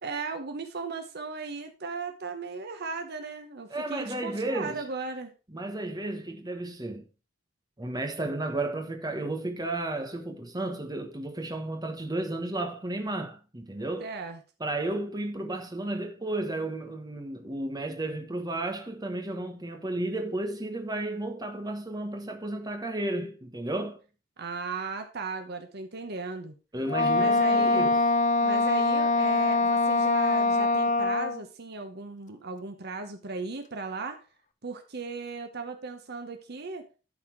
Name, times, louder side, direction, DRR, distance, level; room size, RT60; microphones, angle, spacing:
voice 1, 0.0-5.3 14.0-14.4 24.4-26.6 27.2-27.9 28.4-34.2 34.6-36.8, right 4 dB, 55° right, 1.0 m, -36 dB
voice 2, 3.7-4.8 5.5-7.1 7.8-14.1 14.6-24.0 26.7-28.0, right 2 dB, 20° right, 1.3 m, -33 dB
Wind instrument woodwind instrument, 26.9-31.4, left 2 dB, 40° left, 0.8 m, -23 dB
12.0 x 4.3 x 4.6 m
head